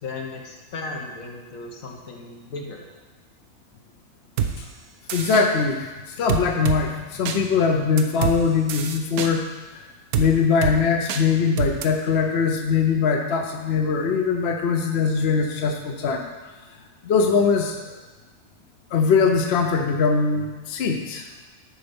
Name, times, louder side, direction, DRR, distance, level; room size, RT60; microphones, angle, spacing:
voice 1, 0.0-2.9, left 3 dB, 70° left, 1 dB, 1.5 m, -35 dB
sound 1, 4.4-4.5 5.1-5.5 6.3-6.8 7.3-7.4 8.0-8.4 8.7-9.3 10.1-10.3 10.6-10.8 11.1-11.2 11.6-11.9, right 8 dB, 85° right, 1.2 m, -25 dB
voice 2, 5.1-9.4 10.2-16.3 17.0-18.0 18.9-21.3, left 5 dB, 55° left, 3 dB, 0.9 m, -21 dB
11.0 x 4.3 x 5.3 m, 1.2 s
omnidirectional pair, 1.5 m